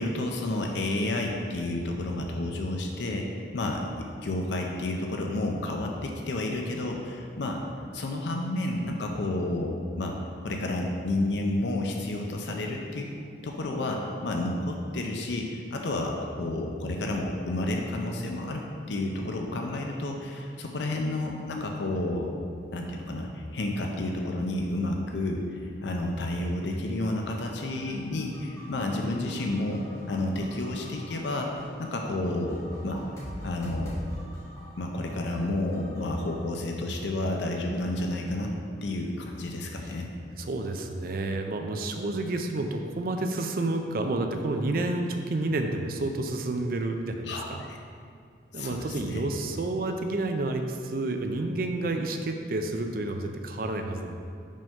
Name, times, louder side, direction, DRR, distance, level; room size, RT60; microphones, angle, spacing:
voice 1, 0.0-3.3 3.5-3.8 4.2-7.6 7.9-10.2 10.4-13.1 13.4-22.3 22.7-31.5 31.8-33.0 33.4-33.9 34.8-38.5 38.8-40.1 47.2-47.8 48.5-49.3, left 2 dB, 70° left, 1 dB, 0.5 m, -30 dB
sound 1, 27.2-36.4, equal, 15° left, 1.2 m, -44 dB
voice 2, 40.4-47.6 48.5-54.2, right 2 dB, 50° right, 5 dB, 0.4 m, -30 dB
5.2 x 3.6 x 5.3 m, 2.3 s
head